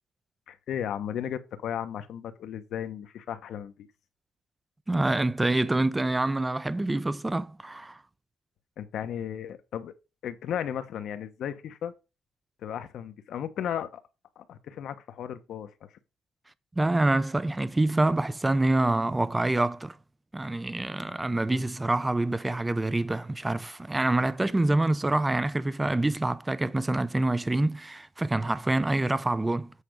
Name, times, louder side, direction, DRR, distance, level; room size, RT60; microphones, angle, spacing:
voice 1, 0.5-3.9 8.8-9.9 10.2-11.9 12.6-13.9 14.4-15.7, left 9 dB, 75° left, 1.0 m, -35 dB
voice 2, 4.9-8.0 16.8-20.0 20.3-29.7, right 2 dB, 15° right, 0.6 m, -26 dB
8.4 x 4.3 x 5.1 m
cardioid pair, 90°, 0 cm